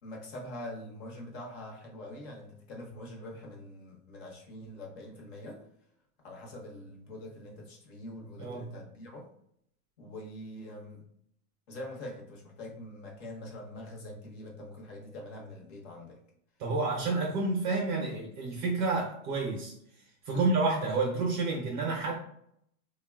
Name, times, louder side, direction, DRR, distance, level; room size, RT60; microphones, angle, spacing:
voice 1, 0.0-5.6 6.2-9.3 10.0-11.0 11.7-16.2 20.3-20.5, left 1 dB, 45° left, 0 dB, 0.9 m, -44 dB
voice 2, 16.6-19.7 20.3-22.2, right 3 dB, 35° right, -1 dB, 0.5 m, -29 dB
3.5 x 2.2 x 2.2 m, 0.69 s
supercardioid pair, 155°, 43 cm